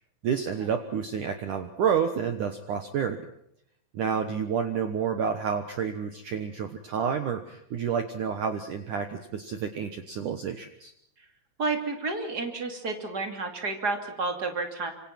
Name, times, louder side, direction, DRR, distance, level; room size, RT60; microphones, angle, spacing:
voice 1, 0.2-3.2 3.9-10.9, right 7 dB, 70° right, 7 dB, 1.9 m, -29 dB
voice 2, 11.6-14.9, right 3 dB, 25° right, 5 dB, 2.6 m, -30 dB
26.5 x 25.5 x 5.9 m, 0.72 s
omnidirectional pair, 5.6 m